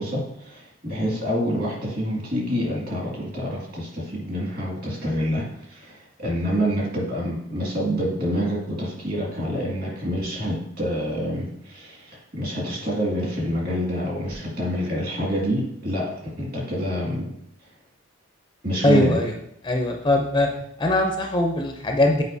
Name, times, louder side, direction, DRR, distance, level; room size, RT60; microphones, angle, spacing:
voice 1, 0.0-17.3 18.6-19.2, equal, 45° right, -3 dB, 2.1 m, -27 dB
voice 2, 18.8-19.3 19.6-20.5 20.8-22.2, left 1 dB, 20° left, 3 dB, 0.5 m, -21 dB
8.1 x 4.9 x 2.7 m, 0.74 s
head